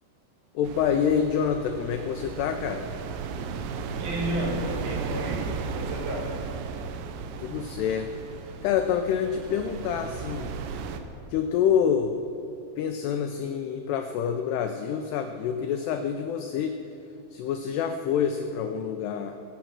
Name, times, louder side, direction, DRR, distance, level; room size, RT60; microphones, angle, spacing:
voice 1, 0.6-2.9 7.4-8.2 8.6-10.6 11.3-12.2 12.8-16.8 17.3-19.4, left 8 dB, 85° left, 6 dB, 2.4 m, -27 dB
sound 1, 0.6-11.0, right 5 dB, 75° right, 2.8 m, -35 dB
voice 2, 4.0-6.3, equal, 55° right, -3 dB, 3.9 m, -32 dB
23.0 x 8.2 x 6.0 m, 2.7 s
omnidirectional pair, 5.5 m